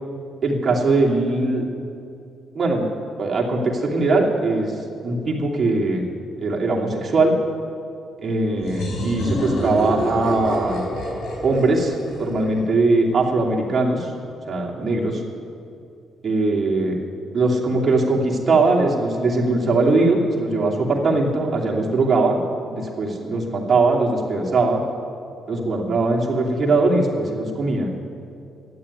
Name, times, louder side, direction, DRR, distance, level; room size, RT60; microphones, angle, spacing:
voice 1, 0.4-1.6 2.5-2.9 3.2-6.0 6.4-7.3 8.2-10.9 11.4-14.1 14.5-15.2 16.2-17.0 17.3-22.4 22.7-24.8 25.5-27.9, right 3 dB, 40° right, -2 dB, 2.6 m, -20 dB
sound 1, 8.6-13.2, left 1 dB, 75° left, 4.7 m, -28 dB
12.5 x 9.4 x 9.7 m, 2.6 s
cardioid pair, 90°, 0 cm